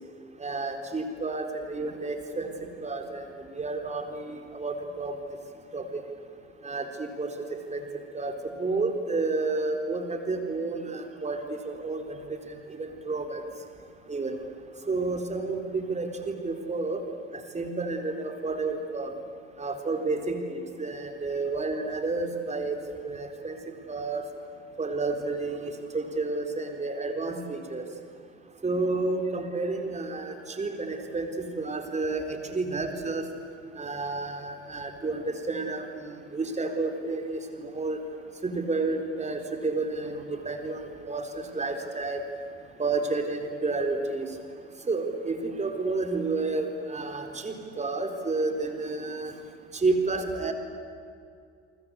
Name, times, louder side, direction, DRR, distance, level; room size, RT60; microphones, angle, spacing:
voice 1, 0.4-2.5 2.8-3.3 3.5-5.1 5.7-5.8 6.6-7.3 7.7-7.9 8.1-12.2 12.8-13.4 14.1-14.4 14.9-17.0 17.5-19.1 19.6-22.8 23.0-23.6 23.9-24.2 24.8-27.8 28.6-33.2 33.8-38.0 38.4-41.2 41.5-42.2 42.8-44.3 44.9-49.3 49.7-50.5, right 3 dB, 20° right, 5 dB, 4.2 m, -30 dB
29.5 x 24.5 x 8.4 m, 2.4 s
figure-of-eight pair, 65°, 34 cm